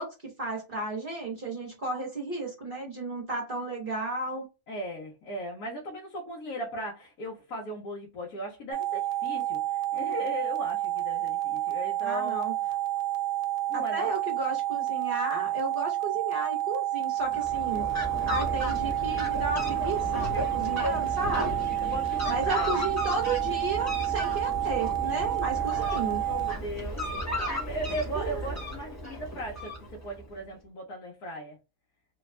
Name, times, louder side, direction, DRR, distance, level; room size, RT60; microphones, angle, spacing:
voice 1, 0.0-4.5 12.0-12.5 13.7-17.9 18.3-21.7 22.3-26.2 28.1-28.5, right 2 dB, 35° right, 1.1 m, -33 dB
voice 2, 4.7-12.5 13.7-14.1 18.2-18.4 20.3-20.4 21.8-22.8 25.6-31.6, equal, 65° left, 1.4 m, -38 dB
sound 1, 8.7-26.5, right 14 dB, 90° right, 1.2 m, -30 dB
Fowl, 17.2-30.2, equal, 10° left, 1.1 m, -34 dB
3.3 x 2.3 x 3.1 m
omnidirectional pair, 1.7 m